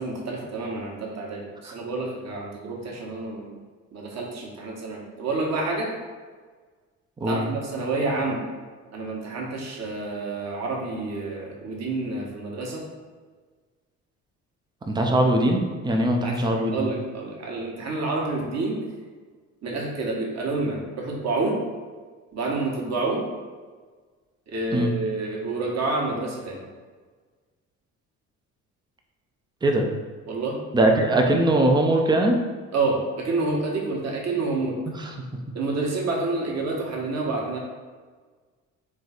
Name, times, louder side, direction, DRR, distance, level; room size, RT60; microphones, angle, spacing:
voice 1, 0.0-3.5 3.9-5.9 7.3-8.4 8.9-12.8 16.2-18.8 19.6-21.6 22.3-23.2 24.5-26.6 30.3-30.6 32.7-34.8 35.5-37.6, right 3 dB, 35° right, -1 dB, 1.2 m, -28 dB
voice 2, 14.9-16.8 24.7-24.9 29.6-29.9 30.7-32.3 35.0-35.1, right 1 dB, 10° right, 2 dB, 0.6 m, -21 dB
3.8 x 3.3 x 4.0 m, 1.5 s
figure-of-eight pair, 50°, 44 cm